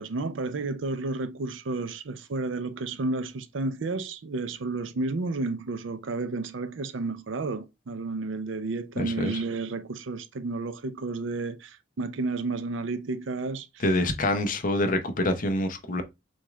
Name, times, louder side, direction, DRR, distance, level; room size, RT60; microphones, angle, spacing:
voice 1, 0.0-13.8, right 3 dB, 75° right, 0.5 m, -31 dB
voice 2, 9.0-9.4 13.8-16.0, left 1 dB, 45° left, 0.7 m, -26 dB
6.3 x 2.4 x 3.1 m
head